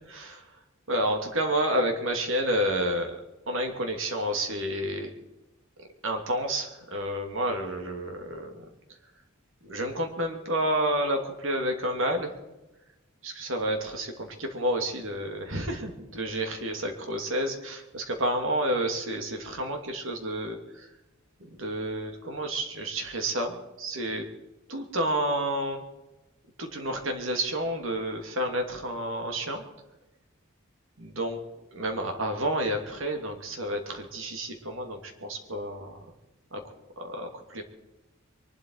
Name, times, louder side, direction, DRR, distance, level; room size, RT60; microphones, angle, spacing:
voice 1, 0.1-0.4 0.9-3.2 3.5-5.1 6.0-8.6 9.6-12.3 13.2-20.9 21.4-24.3 24.7-25.8 26.6-29.6 31.0-31.4 31.7-36.0 36.5-36.6 37.0-37.6, right 1 dB, 70° right, 4 dB, 2.7 m, -30 dB
23.5 x 12.0 x 4.7 m, 1.0 s
head